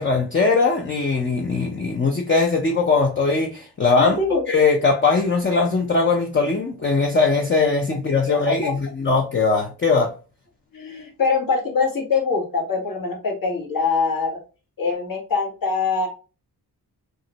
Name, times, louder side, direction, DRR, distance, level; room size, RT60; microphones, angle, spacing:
voice 1, 0.0-4.2 4.5-10.1, left 4 dB, 30° left, 0.6 m, -20 dB
voice 2, 4.0-4.4 8.5-8.7 10.7-14.4 14.8-16.1, left 4 dB, 55° left, 1.3 m, -23 dB
3.7 x 2.1 x 2.8 m
cardioid pair, 50°, 40 cm